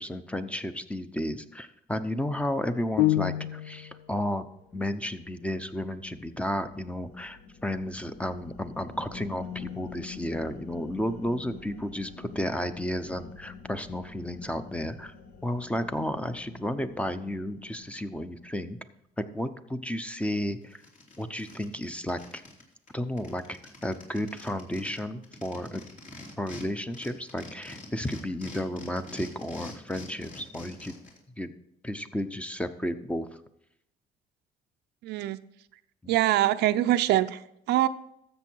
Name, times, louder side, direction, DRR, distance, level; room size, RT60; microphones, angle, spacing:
voice 1, 0.0-4.4 4.7-15.1 15.4-18.8 19.2-20.8 21.2-22.4 22.9-25.8 26.4-30.9 31.4-31.5 31.8-33.3, left 1 dB, 5° left, 0.8 m, -32 dB
sound 1, 3.0-4.0, left 15 dB, 80° left, 0.5 m, -26 dB
sound 2, 4.4-18.8, left 6 dB, 65° left, 1.6 m, -46 dB
sound 3, 20.3-20.4 20.7-22.6 22.9-23.0 23.2-26.6 26.9-31.2, left 2 dB, 50° left, 3.3 m, -45 dB
voice 2, 35.0-35.4 36.1-37.4 37.7-37.9, right 14 dB, 80° right, 0.6 m, -23 dB
13.5 x 7.7 x 4.6 m
cardioid pair, 110°, 17 cm